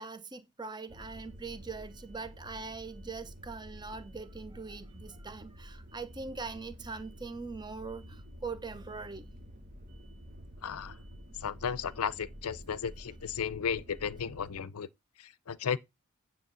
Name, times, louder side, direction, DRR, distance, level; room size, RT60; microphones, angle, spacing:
voice 1, 0.0-9.3, right 4 dB, 20° right, 0.8 m, -42 dB
sound 1, 0.9-14.6, equal, 35° right, 1.2 m, -49 dB
voice 2, 10.6-11.0 11.4-14.9 15.2-15.8, left 7 dB, 80° left, 0.6 m, -34 dB
9.4 x 3.3 x 6.8 m
head